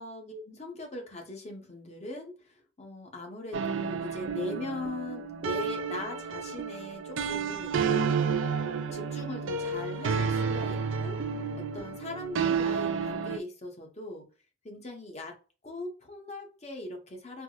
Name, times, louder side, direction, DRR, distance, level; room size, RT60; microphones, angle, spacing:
voice 1, 0.0-7.8 8.2-11.2 11.5-14.3 14.6-15.4 15.6-17.4, left 2 dB, 35° left, 1 dB, 0.9 m, -40 dB
sound 1, 3.5-13.4, right 5 dB, 75° right, 0.4 m, -31 dB
4.5 x 2.1 x 2.4 m, 0.34 s
head